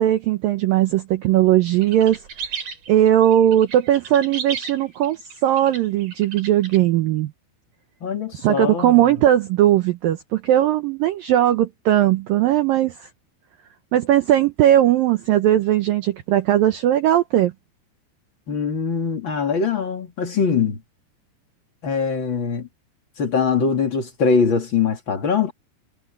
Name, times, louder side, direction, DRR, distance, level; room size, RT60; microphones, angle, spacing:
voice 1, 0.0-2.2 2.5-2.6 2.9-7.3 8.4-13.1 13.9-17.5, right 12 dB, 85° right, 2.0 m, -18 dB
sound 1, 1.8-6.8, right 6 dB, 40° right, 3.7 m, -34 dB
voice 2, 8.0-9.0 18.5-20.8 21.8-22.7 23.2-25.5, left 5 dB, 35° left, 2.2 m, -22 dB
omnidirectional pair, 5.4 m